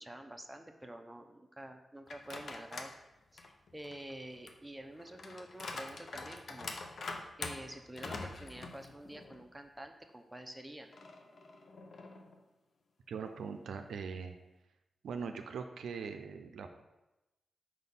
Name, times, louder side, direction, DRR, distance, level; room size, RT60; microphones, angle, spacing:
voice 1, 0.0-2.9 3.3-6.8 7.4-10.9, right 1 dB, 10° right, 4 dB, 0.7 m, -48 dB
sound 1, 2.1-3.0 3.4-9.5 9.8-9.9 10.9-12.4, left 3 dB, 65° left, 0.6 m, -45 dB
voice 2, 13.1-14.4 15.0-16.8, right 5 dB, 90° right, 6 dB, 0.4 m, -41 dB
4.7 x 4.1 x 5.4 m, 0.99 s
cardioid pair, 65°, 0 cm